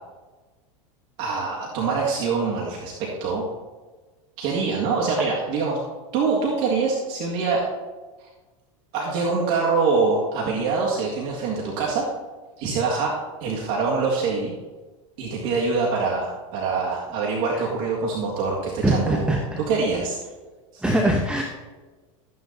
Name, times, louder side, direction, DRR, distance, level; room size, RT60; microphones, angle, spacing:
voice 1, 1.2-3.4 4.4-5.8 6.1-7.6 8.9-12.1 12.6-13.2 13.4-14.5 15.2-19.4 19.7-20.2 20.7-20.8, right 4 dB, 60° right, -3 dB, 2.0 m, -24 dB
voice 2, 18.8-19.6 20.8-21.4, right 1 dB, 5° right, 1 dB, 1.0 m, -22 dB
13.5 x 9.5 x 2.8 m, 1.3 s
hypercardioid pair, 105°, 17 cm